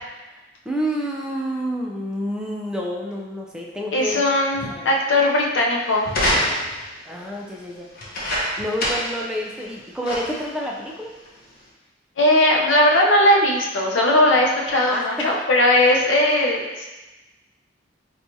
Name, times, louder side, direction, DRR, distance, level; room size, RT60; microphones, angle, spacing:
voice 1, 0.7-4.2 4.7-4.9 7.1-7.9 8.6-11.1 14.3-14.4 14.9-15.4, equal, 5° right, -2 dB, 0.3 m, -29 dB
voice 2, 3.9-6.1 12.2-16.9, left 1 dB, 90° left, -1 dB, 0.6 m, -18 dB
sound 1, 6.1-6.9 8.0-9.2 9.6-9.7 10.0-10.5 11.3-11.4, equal, 50° left, 0.7 m, -24 dB
4.3 x 2.3 x 2.6 m, 1.1 s
head